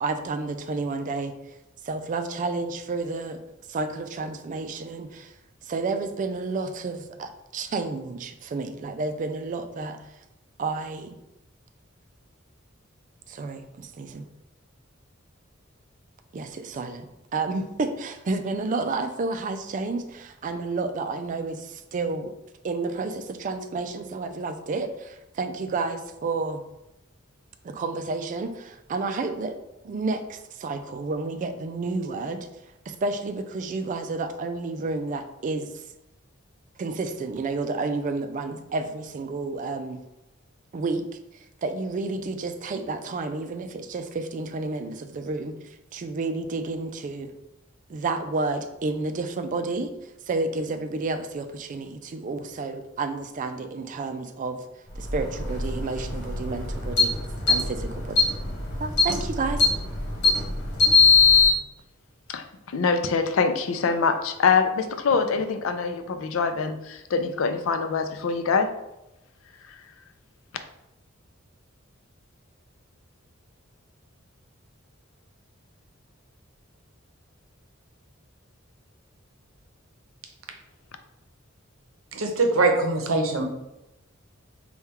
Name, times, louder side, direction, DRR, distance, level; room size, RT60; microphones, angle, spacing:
voice 1, 0.0-1.3 1.8-3.4 3.7-5.3 5.7-10.0 10.6-11.2 13.3-14.3 16.3-22.3 22.6-26.6 27.6-29.6 29.8-32.4 32.9-35.7 36.8-40.0 40.7-41.0 41.6-45.5 45.9-47.3 47.9-49.9 50.3-54.6 55.0-57.1 57.5-58.3 58.8-59.6, right 3 dB, 40° right, 8 dB, 0.3 m, -30 dB
sound 1, 54.9-61.5, left 5 dB, 55° left, 1.4 m, -22 dB
voice 2, 62.3-68.7, left 5 dB, 90° left, 8 dB, 0.4 m, -24 dB
voice 3, 82.1-83.4, right 3 dB, 90° right, 3 dB, 0.6 m, -22 dB
4.2 x 2.3 x 3.6 m, 0.91 s
head